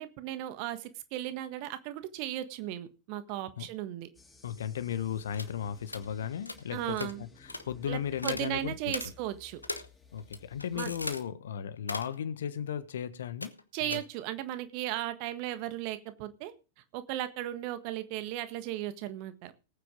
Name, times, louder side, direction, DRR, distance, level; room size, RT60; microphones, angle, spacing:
voice 1, 0.0-4.1 6.7-7.2 7.9-9.6 10.7-10.9 13.7-16.5 16.9-19.5, right 13 dB, 45° right, 1.5 m, -36 dB
sound 1, 4.1-11.2, left 4 dB, 10° left, 2.8 m, -57 dB
voice 2, 4.4-8.9 10.1-14.0, left 9 dB, 65° left, 1.3 m, -36 dB
sound 2, 5.3-5.5 5.9-6.1 6.5-6.6 7.0-7.1 7.5-7.6 8.2-8.5 8.9-9.1 9.6-9.9 10.2-11.2 11.8-12.2 13.4-13.6 13.9-14.0, left 2 dB, 85° left, 1.2 m, -38 dB
18.5 x 9.2 x 3.8 m
figure-of-eight pair, 90°, 0 cm